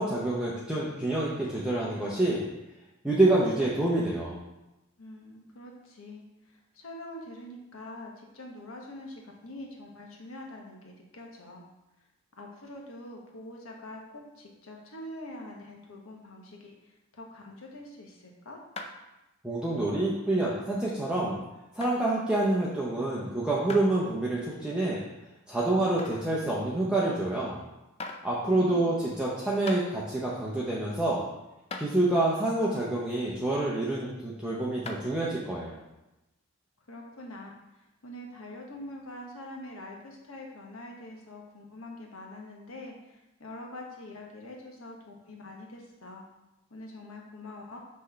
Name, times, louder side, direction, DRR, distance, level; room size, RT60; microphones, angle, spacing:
voice 1, 0.0-2.4 3.0-4.4 19.4-21.4 21.7-25.0 25.5-27.6 28.2-31.2 31.8-35.8, right 2 dB, 5° right, -6 dB, 0.7 m, -27 dB
voice 2, 5.0-6.2 6.5-11.6 12.4-18.6 28.4-28.9 36.9-37.5 37.7-46.2 46.7-47.8, left 1 dB, 70° left, 0 dB, 1.2 m, -44 dB
sound 1, 18.8-19.1 19.7-19.8 20.5-20.6 21.8-22.0 23.7-23.9 24.5-24.6 26.0-26.3 27.4-27.5 28.0-28.3 29.2-29.3 29.7-29.8 31.2-31.3 31.7-31.9 34.9-35.1, left 3 dB, 30° left, 0.4 m, -39 dB
6.1 x 3.2 x 5.6 m, 0.97 s
head